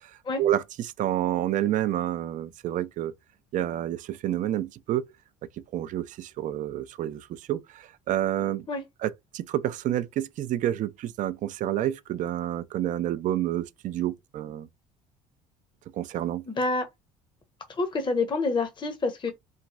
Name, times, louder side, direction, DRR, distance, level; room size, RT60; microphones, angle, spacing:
voice 1, 0.4-3.1 3.5-5.1 5.7-8.7 9.0-14.7 15.9-16.5, right 12 dB, 40° right, 0.4 m, -29 dB
voice 2, 16.5-16.9 17.7-19.3, left 3 dB, 25° left, 0.8 m, -27 dB
3.1 x 2.3 x 2.4 m
figure-of-eight pair, 55°, 20 cm